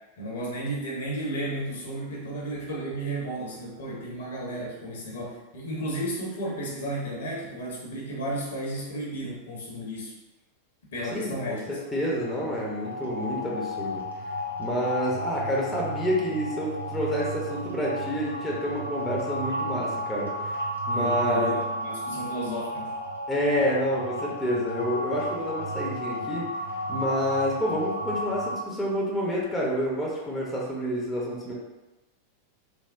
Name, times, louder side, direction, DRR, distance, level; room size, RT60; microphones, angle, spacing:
voice 1, 0.2-10.1 10.9-11.6 20.9-22.9, right 1 dB, 60° left, -4 dB, 0.8 m, -33 dB
voice 2, 11.1-14.0 14.6-20.6 20.9-21.6 23.3-26.5 26.9-31.5, equal, 5° left, -5 dB, 0.7 m, -28 dB
sound 1, 11.9-28.5, equal, 85° right, 0.6 m, -33 dB
3.3 x 2.1 x 2.5 m, 1.1 s
figure-of-eight pair, 90°, 0 cm